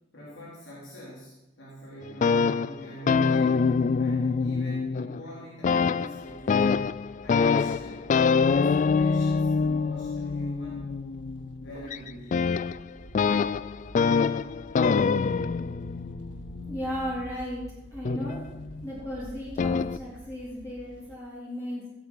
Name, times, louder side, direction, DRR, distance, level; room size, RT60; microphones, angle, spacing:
voice 1, 0.1-3.6 4.0-8.1 8.5-10.9 11.6-12.4, equal, 85° left, -5 dB, 3.4 m, -44 dB
sound 1, 2.0-5.3 5.6-17.2 18.0-18.9 19.6-20.0, left 5 dB, 45° left, 0.3 m, -25 dB
sound 2, 6.2-21.2, right 1 dB, 85° right, 0.9 m, -48 dB
voice 2, 16.7-17.7 17.9-21.9, equal, 15° left, -7 dB, 3.2 m, -35 dB
16.0 x 8.0 x 5.6 m, 0.96 s
head